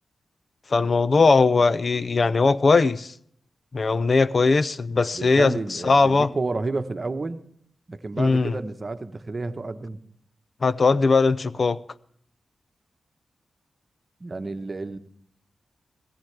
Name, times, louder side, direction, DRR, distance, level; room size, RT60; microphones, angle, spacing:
voice 1, 0.7-3.1 3.7-6.3 8.2-8.5 10.6-11.8, left 4 dB, 50° left, 0.5 m, -20 dB
voice 2, 5.1-7.4 7.9-10.0 14.2-15.0, right 3 dB, 40° right, 1.0 m, -30 dB
18.5 x 16.5 x 3.3 m
cardioid pair, 55°, 0 cm